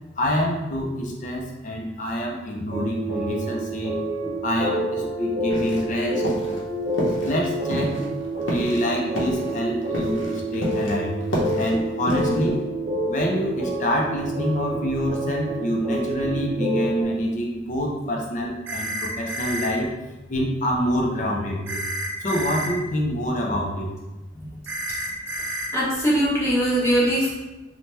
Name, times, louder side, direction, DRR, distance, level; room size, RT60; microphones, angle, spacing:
voice 1, 0.2-4.0 4.4-6.3 7.2-8.0 8.5-11.2 11.6-12.5 13.1-19.9 20.3-21.8 22.2-23.9, equal, 40° left, -1 dB, 0.5 m, -26 dB
sound 1, 2.7-17.0, right 1 dB, 45° right, 0.9 m, -28 dB
sound 2, 5.5-6.0 6.2-6.6 6.9-7.4 7.7-11.0 11.2-12.5, equal, 80° left, 0.7 m, -29 dB
sound 3, 18.7-19.7 21.7-22.7 24.7-25.7, right 1 dB, 65° right, 0.5 m, -30 dB
voice 2, 25.7-27.3, equal, 15° left, -8 dB, 0.9 m, -22 dB
2.8 x 2.2 x 3.2 m, 1.0 s
head